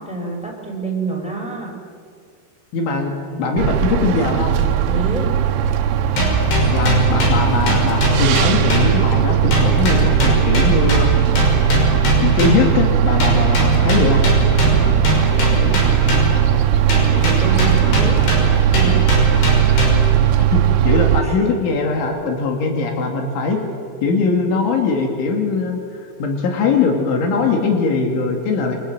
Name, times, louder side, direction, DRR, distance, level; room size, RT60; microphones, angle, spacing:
voice 1, 0.0-1.7 3.3-3.7 4.8-5.3 14.6-15.9 17.1-19.1 21.2-21.4, right 2 dB, ahead, 0 dB, 5.6 m, -28 dB
voice 2, 2.7-4.6 6.7-11.2 12.2-14.3 18.0-18.1 20.5-23.6 24.0-28.8, left 4 dB, 85° left, 2 dB, 5.0 m, -21 dB
sound 1, 3.6-21.2, right 10 dB, 70° right, 2.9 m, -17 dB
sound 2, 6.2-9.3 9.5-12.8 13.2-16.5 16.9-20.2, left 2 dB, 65° left, 8.2 m, -22 dB
28.5 x 25.5 x 8.0 m, 2.2 s
omnidirectional pair, 5.3 m